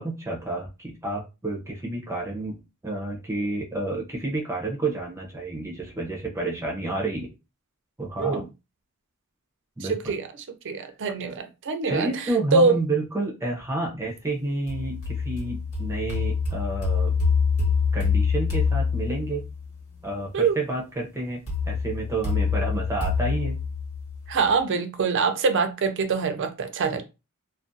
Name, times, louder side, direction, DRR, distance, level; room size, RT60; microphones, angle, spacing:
voice 1, 0.0-7.3 8.0-8.4 9.8-10.1 11.8-17.2 17.9-19.4 20.0-23.6, right 2 dB, 15° right, 0.6 m, -30 dB
voice 2, 9.8-10.3 10.6-12.1 12.5-12.8 20.3-20.6 24.3-27.1, right 4 dB, 60° right, 0.5 m, -24 dB
sound 1, 14.7-19.6 21.5-24.5, left 5 dB, 80° left, 1.2 m, -25 dB
2.4 x 2.3 x 2.6 m
head